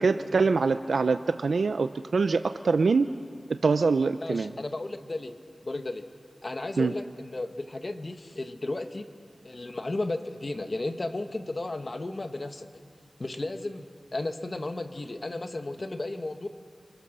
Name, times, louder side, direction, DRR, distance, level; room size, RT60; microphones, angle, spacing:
voice 1, 0.0-3.1 3.5-4.5 6.8-6.9, right 4 dB, 85° right, 9 dB, 0.6 m, -24 dB
voice 2, 4.2-5.3 5.6-6.0 6.4-9.0 9.4-12.7 13.2-13.8 14.1-16.5, left 2 dB, 45° left, 7 dB, 1.6 m, -34 dB
29.5 x 25.5 x 6.8 m, 2.2 s
wide cardioid pair, 65°, 0 cm